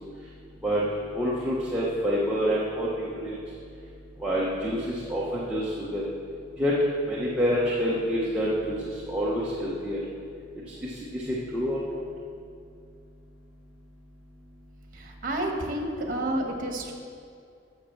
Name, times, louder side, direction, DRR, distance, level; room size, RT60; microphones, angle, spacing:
voice 1, 1.1-3.4 4.2-6.0 6.6-6.7 7.1-8.8 9.1-10.0 10.8-11.8, equal, 5° right, -7 dB, 1.1 m, -27 dB
voice 2, 14.9-16.9, right 1 dB, 50° right, 2 dB, 1.3 m, -30 dB
8.4 x 6.5 x 7.2 m, 2.4 s
head